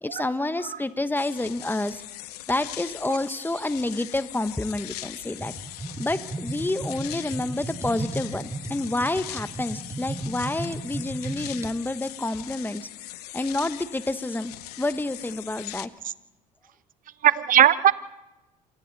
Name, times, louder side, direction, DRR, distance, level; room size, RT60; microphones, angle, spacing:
voice 1, 0.0-2.0 2.5-5.5 6.0-12.8 13.3-15.9, left 2 dB, 10° left, 12 dB, 1.2 m, -29 dB
sound 1, 1.2-15.9, left 17 dB, 85° left, 0.7 m, -40 dB
sound 2, 5.4-11.7, right 2 dB, 15° right, 1.5 m, -35 dB
voice 2, 17.2-17.9, right 10 dB, 45° right, 16 dB, 0.9 m, -19 dB
27.0 x 24.0 x 4.1 m, 0.97 s
hypercardioid pair, 65°, 20 cm